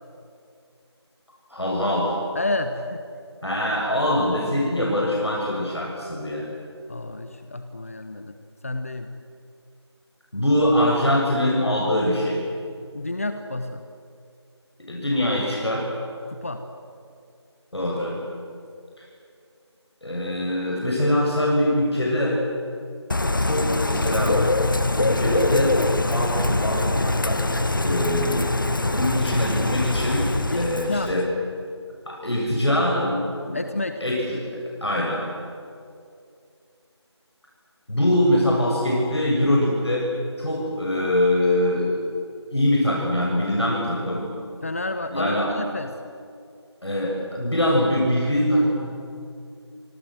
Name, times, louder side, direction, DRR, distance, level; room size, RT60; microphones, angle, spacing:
voice 1, 1.5-2.1 3.4-6.5 10.3-12.4 14.9-15.9 17.7-18.2 19.0-19.1 20.0-22.4 23.4-24.4 25.0-25.8 26.1-27.5 27.8-28.5 28.9-30.3 30.5-31.2 32.1-33.2 33.4-33.6 34.0-34.5 34.8-35.2 37.9-40.1 40.4-41.9 42.5-44.3 45.1-45.5 46.8-48.7, left 1 dB, 65° left, -2 dB, 7.2 m, -23 dB
voice 2, 2.3-3.0 6.9-8.3 8.6-9.1 12.9-13.9 16.3-16.6 30.5-31.1 33.5-34.0 44.6-45.9, left 2 dB, 30° left, 8 dB, 1.1 m, -30 dB
Bird / Rain, 23.1-31.2, left 2 dB, 45° left, 1.5 m, -23 dB
27.0 x 25.5 x 7.8 m, 2.4 s
figure-of-eight pair, 170°, 15 cm